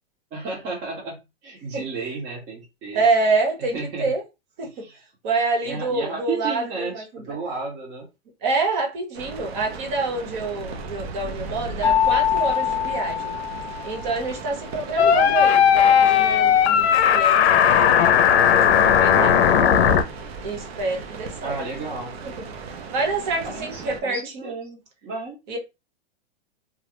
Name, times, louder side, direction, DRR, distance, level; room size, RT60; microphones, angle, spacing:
voice 1, 0.3-3.0 3.6-4.1 4.7-5.0 5.6-8.1 15.0-15.3 21.4-22.1 23.4-25.4, right 4 dB, 25° right, 0.6 m, -33 dB
voice 2, 2.9-4.2 4.6-4.7 5.2-7.4 8.4-13.3 13.8-18.0 18.5-19.4 20.4-21.6 22.2-22.3 22.7-24.5 25.5-25.6, right 3 dB, 45° right, 1.0 m, -27 dB
Generated Rain & Thunder, 9.1-24.0, right 4 dB, 70° right, 0.6 m, -37 dB
Mallet percussion, 11.8-14.3, left 9 dB, 30° left, 0.7 m, -24 dB
sound 1, 15.0-20.0, left 9 dB, 75° left, 0.5 m, -16 dB
2.4 x 2.0 x 2.9 m
hypercardioid pair, 145°, 32 cm